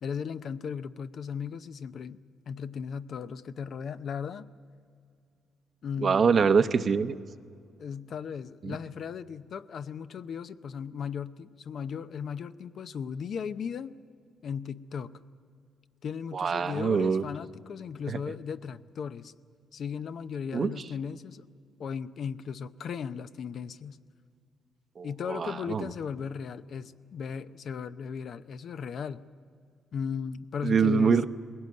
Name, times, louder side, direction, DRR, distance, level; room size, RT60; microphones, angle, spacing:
voice 1, 0.0-2.2 2.5-4.5 5.8-6.3 7.8-14.0 14.4-15.2 16.0-19.3 19.7-21.4 21.8-24.0 25.0-29.2 29.9-31.2, left 6 dB, 60° left, 12 dB, 0.6 m, -36 dB
voice 2, 6.0-7.2 8.6-8.8 16.3-17.2 18.1-18.2 20.5-20.7 25.0-25.9 30.6-31.2, right 5 dB, 45° right, 11 dB, 0.8 m, -24 dB
20.5 x 17.0 x 9.5 m, 2.3 s
cardioid pair, 90°, 0 cm